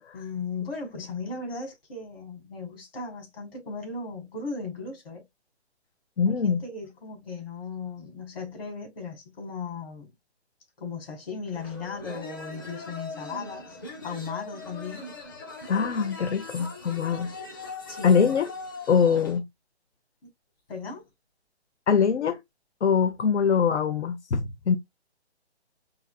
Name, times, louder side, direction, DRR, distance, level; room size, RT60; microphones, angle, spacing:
voice 1, 0.1-5.2 6.2-10.1 10.8-13.8 14.0-15.1 17.9-18.4 20.7-21.1, left 4 dB, 55° left, 3.4 m, -37 dB
voice 2, 6.2-6.6 15.7-17.3 17.6-17.7 18.0-18.5 18.9-19.4 21.9-22.4 22.8-24.8, left 6 dB, 85° left, 0.7 m, -23 dB
sound 1, 11.5-19.4, left 3 dB, 20° left, 0.5 m, -40 dB
5.7 x 2.8 x 2.3 m
hypercardioid pair, 155°, 34 cm